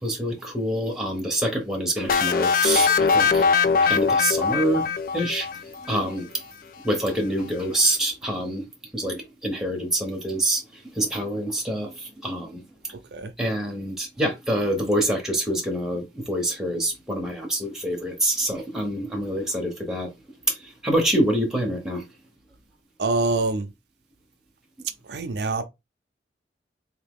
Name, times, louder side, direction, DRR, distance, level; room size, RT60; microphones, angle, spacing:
voice 1, 0.0-3.5 3.8-4.9 5.1-5.5 5.8-6.3 6.8-8.6 8.9-10.6 10.9-12.6 13.4-20.1 20.5-22.0, right 1 dB, 5° right, 1.0 m, -26 dB
sound 1, 2.1-5.9, left 5 dB, 50° left, 0.4 m, -21 dB
voice 2, 23.0-23.7 25.0-25.6, right 3 dB, 70° right, 0.5 m, -25 dB
3.6 x 2.8 x 3.6 m
head